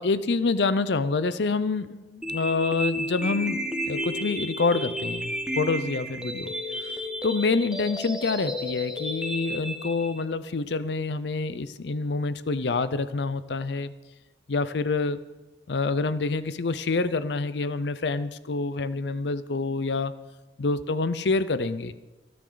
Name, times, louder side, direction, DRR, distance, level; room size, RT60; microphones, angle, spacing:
voice 1, 0.0-6.5 6.8-6.9 7.2-13.9 14.5-15.2 15.7-20.1 20.6-21.9, left 3 dB, 75° left, 14 dB, 0.6 m, -27 dB
sound 1, 2.2-10.2, left 1 dB, 5° right, 1.1 m, -32 dB
28.0 x 9.6 x 3.9 m, 1.1 s
head